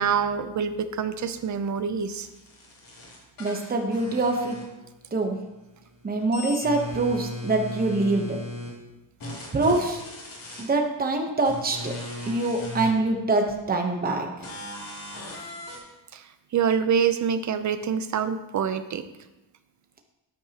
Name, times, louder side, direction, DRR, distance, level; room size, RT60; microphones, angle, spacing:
voice 1, 0.0-2.3 16.1-16.3 16.5-19.0, right 7 dB, 45° right, 11 dB, 0.6 m, -26 dB
sound 1, 2.0-5.1 5.4-8.7 9.2-10.6 11.4-12.9 13.5-13.6 14.4-15.8, left 2 dB, 55° left, 3.0 m, -37 dB
voice 2, 3.4-4.6 5.1-5.4 6.0-8.4 9.5-10.0 10.6-11.9 12.3-14.3, right 2 dB, 20° right, 3 dB, 0.9 m, -24 dB
12.5 x 9.6 x 2.9 m, 0.99 s
wide cardioid pair, 170°, 40 cm